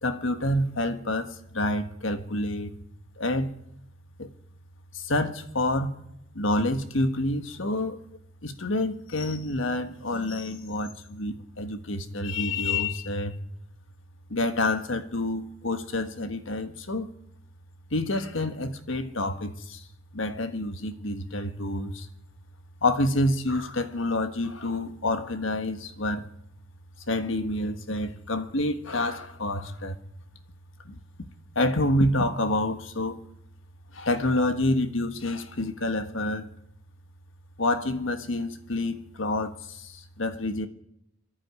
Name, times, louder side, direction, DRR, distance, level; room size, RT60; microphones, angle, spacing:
voice 1, 0.0-2.7 3.2-3.5 4.2-4.3 4.9-6.0 6.3-8.0 8.4-13.4 14.3-17.1 17.9-19.8 20.1-22.1 22.8-26.2 27.1-30.0 30.8-31.3 31.5-33.2 33.9-36.5 37.6-40.7, left 1 dB, 70° left, 1.4 m, -28 dB
24.0 x 11.5 x 9.5 m
head